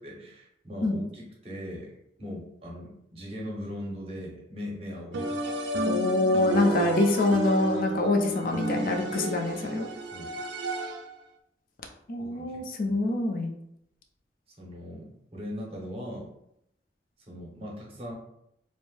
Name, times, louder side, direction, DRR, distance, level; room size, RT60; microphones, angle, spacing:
voice 1, 0.0-1.9 2.2-5.5 10.1-10.3 12.2-13.0 14.6-16.3 17.3-18.1, equal, 35° right, -2 dB, 0.7 m, -39 dB
sound 1, 5.1-11.2, right 2 dB, 80° right, 0.4 m, -31 dB
voice 2, 5.9-9.9 12.1-13.5, left 2 dB, 50° left, 2 dB, 0.4 m, -25 dB
2.6 x 2.0 x 3.0 m, 0.76 s
head